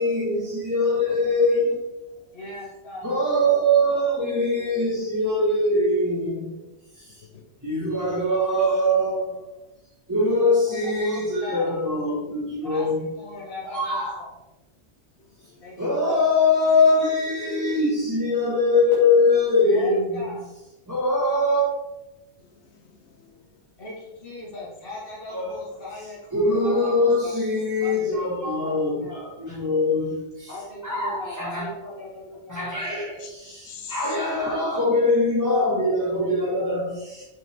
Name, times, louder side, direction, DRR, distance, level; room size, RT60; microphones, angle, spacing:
voice 1, 0.0-1.9 3.0-6.6 6.9-7.2 7.6-9.5 10.1-13.1 13.6-14.2 15.8-20.2 20.9-21.7 25.3-25.8 26.3-30.6 30.8-31.7 32.5-37.2, left 2 dB, 15° right, -7 dB, 1.6 m, -22 dB
voice 2, 2.3-3.1 10.7-11.8 12.6-12.9 13.1-14.3 15.6-16.3 19.6-20.5 23.8-27.3 27.8-29.6 30.5-33.0, left 2 dB, 50° left, -6 dB, 1.7 m, -38 dB
voice 3, 15.2-15.7 22.4-23.2 33.2-34.0, left 7 dB, 70° left, 6 dB, 1.2 m, -45 dB
7.7 x 6.1 x 3.5 m, 1.0 s
omnidirectional pair, 1.2 m